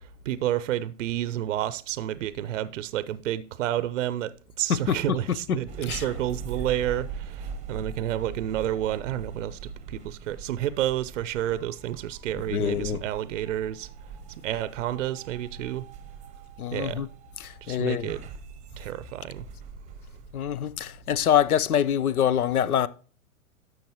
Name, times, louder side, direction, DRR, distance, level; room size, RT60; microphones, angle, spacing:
voice 1, 0.0-13.9 14.3-15.9 16.7-17.1 17.6-18.2 18.8-19.5, right 12 dB, 60° right, 0.6 m, -30 dB
voice 2, 4.7-6.1 12.3-13.0 16.6-17.1 17.4-18.1 20.3-22.9, left 9 dB, 80° left, 0.7 m, -25 dB
sound 1, 5.7-21.7, right 5 dB, 15° right, 0.8 m, -42 dB
12.0 x 6.5 x 3.0 m
hypercardioid pair, 120°, 43 cm